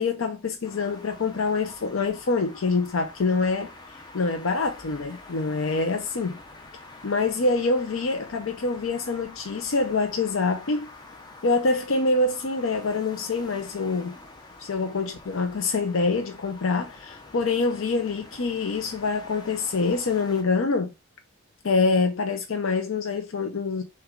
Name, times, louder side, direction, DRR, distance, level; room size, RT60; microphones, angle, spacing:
voice 1, 0.0-3.7 4.1-6.4 7.0-10.9 11.4-14.2 14.6-20.9 21.6-23.8, left 3 dB, 65° left, 0.6 m, -25 dB
sound 1, 0.6-20.4, left 2 dB, 20° left, 0.6 m, -46 dB
6.0 x 2.4 x 3.7 m
head